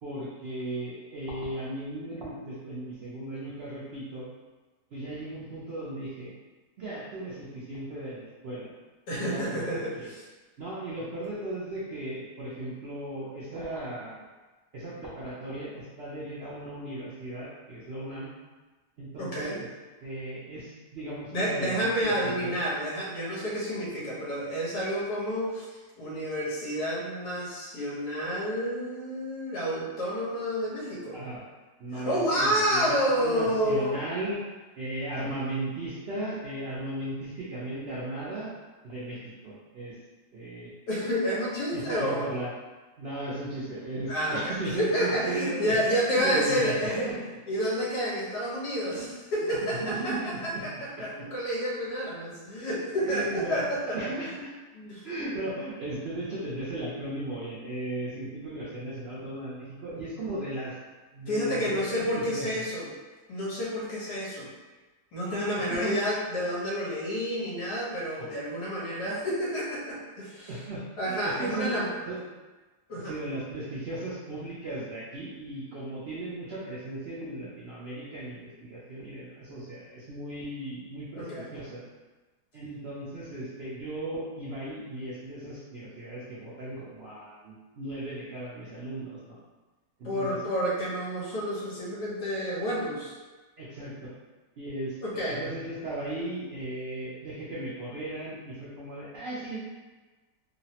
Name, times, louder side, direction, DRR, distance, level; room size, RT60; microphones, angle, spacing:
voice 1, 0.0-4.3 4.9-6.3 6.8-8.7 9.1-10.1 10.6-14.2 14.7-18.3 19.0-19.7 20.0-22.7 31.1-31.4 31.8-34.4 34.7-38.5 38.8-40.0 40.3-40.7 41.7-42.5 43.0-47.2 49.5-50.2 50.5-50.6 51.0-51.3 53.0-53.6 53.9-54.5 55.0-60.7 61.1-62.6 65.2-66.1 68.2-68.3 70.5-72.2 73.0-81.8 82.5-89.4 90.0-90.4 93.6-94.1 94.6-99.6, right 1 dB, 80° right, -7 dB, 0.5 m, -36 dB
voice 2, 9.1-10.2 19.2-19.6 21.3-25.6 26.0-31.2 31.9-34.0 40.9-42.2 44.1-47.1 47.5-50.7 51.0-54.0 54.7-55.0 61.3-62.9 63.3-64.5 65.1-70.5 71.0-71.9 72.9-73.1 81.2-81.4 90.0-93.1 95.0-95.4, equal, 75° left, -6 dB, 1.4 m, -29 dB
3.1 x 2.0 x 2.7 m, 1.2 s
omnidirectional pair, 1.8 m